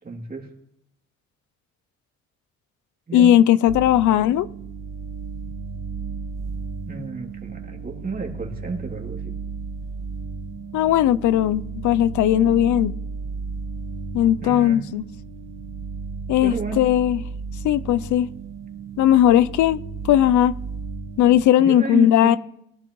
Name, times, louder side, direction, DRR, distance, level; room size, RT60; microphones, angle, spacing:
voice 1, 0.0-0.5 3.1-3.3 6.9-9.3 14.4-14.8 16.4-16.8 21.6-22.4, right 4 dB, 30° right, 2.9 m, -31 dB
voice 2, 3.1-4.5 10.7-12.9 14.1-15.0 16.3-17.2 17.6-18.3 19.0-20.5 21.2-22.4, left 11 dB, 75° left, 0.5 m, -18 dB
sound 1, 3.7-21.4, right 4 dB, 60° right, 1.2 m, -34 dB
22.5 x 11.0 x 3.1 m
cardioid pair, 90°, 30 cm